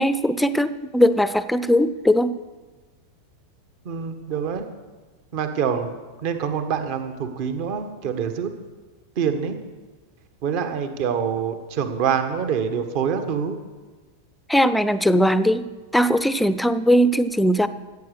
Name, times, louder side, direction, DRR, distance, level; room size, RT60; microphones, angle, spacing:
voice 1, 0.0-2.3 14.5-15.6 15.9-17.7, equal, 5° left, 14 dB, 0.6 m, -19 dB
voice 2, 3.8-4.6 5.3-6.0 6.2-8.5 9.1-9.5 10.4-13.5, right 7 dB, 45° right, 8 dB, 1.4 m, -25 dB
15.0 x 8.3 x 6.6 m, 1.3 s
figure-of-eight pair, 90°, 0 cm